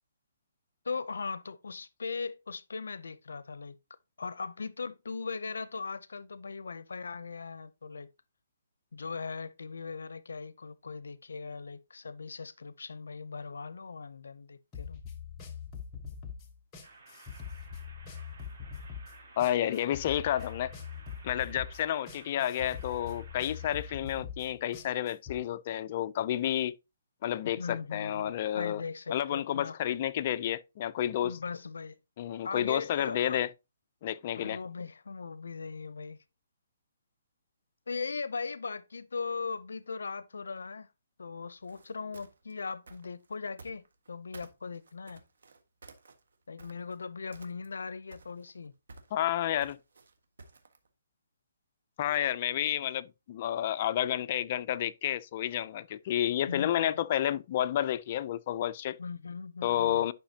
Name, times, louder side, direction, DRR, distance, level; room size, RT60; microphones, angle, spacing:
voice 1, 0.8-3.7 4.2-8.1 8.9-15.0 27.6-29.8 31.2-32.0 32.4-33.4 34.4-36.2 37.9-40.9 41.2-45.2 46.5-48.7 56.4-57.0 59.0-60.1, left 4 dB, 90° left, 0.5 m, -39 dB
sound 1, 14.7-25.4, left 7 dB, 15° left, 1.1 m, -43 dB
sound 2, 16.8-23.9, right 3 dB, 50° right, 3.3 m, -55 dB
voice 2, 19.4-20.7 21.2-26.8 27.2-28.8 29.1-31.4 32.2-33.5 34.0-34.6 49.1-49.8 52.0-59.0 59.6-60.1, left 11 dB, 35° left, 0.4 m, -30 dB
sound 3, 41.6-44.1 44.3-47.0 47.3-47.8 48.1-50.9, right 3 dB, 80° right, 1.5 m, -53 dB
10.5 x 5.7 x 2.8 m
hypercardioid pair, 165°, 0 cm